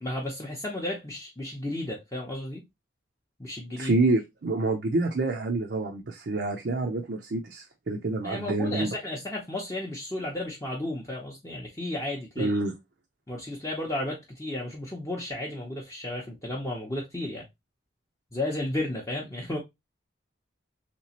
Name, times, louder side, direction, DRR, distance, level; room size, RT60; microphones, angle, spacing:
voice 1, 0.0-2.6 3.4-3.9 8.2-12.5 13.3-17.5 18.3-19.6, left 1 dB, 15° left, 0.6 m, -33 dB
voice 2, 3.7-9.0 12.4-12.7, right 2 dB, 55° right, 0.5 m, -27 dB
3.2 x 2.9 x 2.8 m
head